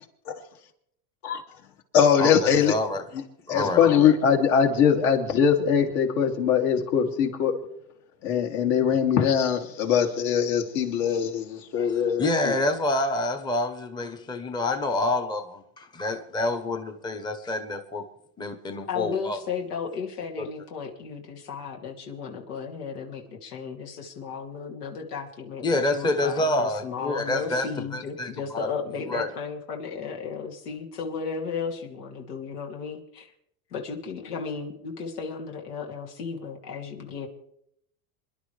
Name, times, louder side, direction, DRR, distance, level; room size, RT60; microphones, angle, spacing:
voice 1, 1.9-2.7 3.5-7.5 8.2-12.5, left 7 dB, 60° left, 2.7 m, -22 dB
voice 2, 2.6-3.0 3.5-3.8 11.7-18.0 18.4-19.4 20.4-20.5 25.6-27.7 27.9-28.7 29.1-29.3, left 2 dB, 10° left, 0.9 m, -27 dB
voice 3, 18.9-33.3 33.7-37.3, left 6 dB, 90° left, 2.8 m, -34 dB
27.0 x 11.0 x 3.3 m
supercardioid pair, 135°, 45 cm